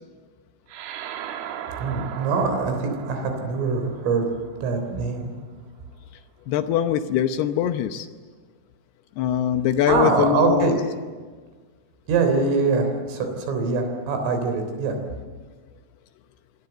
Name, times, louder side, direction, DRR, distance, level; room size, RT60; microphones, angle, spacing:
sound 1, 0.7-5.4, right 9 dB, 65° right, 2.7 m, -38 dB
voice 1, 1.8-4.3 4.6-5.3 9.9-10.7 12.1-15.0, right 4 dB, 85° right, 5 dB, 6.1 m, -23 dB
voice 2, 6.5-8.1 9.2-10.8, left 10 dB, 75° left, 8 dB, 2.5 m, -22 dB
27.5 x 23.5 x 8.0 m, 1.5 s
omnidirectional pair, 5.6 m